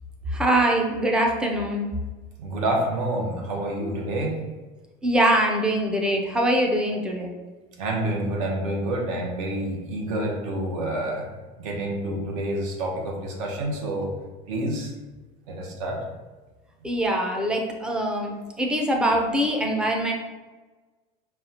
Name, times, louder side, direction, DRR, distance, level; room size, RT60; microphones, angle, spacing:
voice 1, 0.3-1.9 5.0-7.3 16.8-20.1, right 1 dB, 5° right, 1 dB, 0.4 m, -23 dB
voice 2, 2.4-4.4 7.8-11.3 11.6-14.1 14.5-14.9 15.5-16.0, right 1 dB, 85° right, 0 dB, 1.0 m, -28 dB
5.5 x 2.3 x 2.8 m, 1.2 s
cardioid pair, 160°, 17 cm